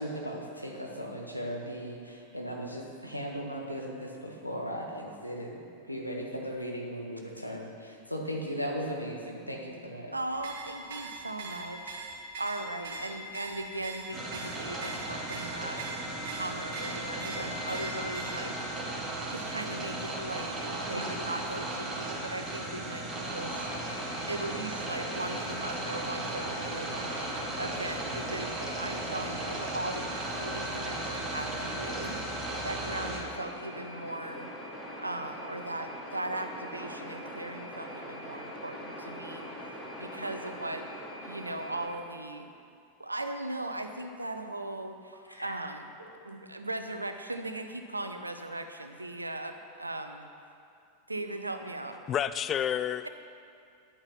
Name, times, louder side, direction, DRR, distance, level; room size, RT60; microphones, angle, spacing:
voice 1, 0.0-5.6 5.9-10.1 20.9-21.1 45.3-45.5, equal, 90° left, 0 dB, 1.5 m, -37 dB
voice 2, 10.1-12.0 12.4-15.8 16.4-18.5 19.3-23.7 24.3-27.1 27.6-34.5 35.0-39.5 40.0-40.9 41.2-42.5 43.0-45.9 46.2-50.3 51.1-52.0, right 2 dB, 85° right, 7 dB, 0.8 m, -38 dB
sound 1, 10.3-18.6, right 1 dB, 60° right, 1.5 m, -41 dB
sound 2, 14.1-33.2, right 2 dB, 20° right, 2.4 m, -36 dB
sound 3, 23.6-41.9, equal, ahead, 2.6 m, -43 dB
voice 3, 52.1-53.1, left 9 dB, 30° left, 14 dB, 0.3 m, -29 dB
11.0 x 8.8 x 5.9 m, 2.4 s
figure-of-eight pair, 90°, 0 cm